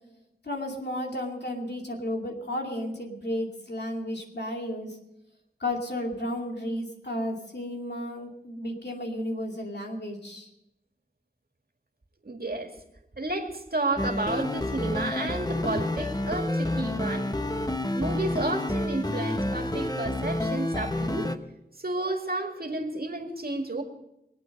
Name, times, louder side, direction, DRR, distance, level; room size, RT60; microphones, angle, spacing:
voice 1, 0.4-5.0 5.6-10.5, left 1 dB, 85° left, 0 dB, 2.6 m, -33 dB
voice 2, 12.2-12.7 13.2-17.3 17.9-21.3 21.8-23.8, right 2 dB, 65° right, 3 dB, 2.1 m, -31 dB
sound 1, 14.0-21.4, left 1 dB, 25° left, 1.0 m, -29 dB
23.5 x 8.6 x 5.3 m, 0.86 s
wide cardioid pair, 45°, 17 cm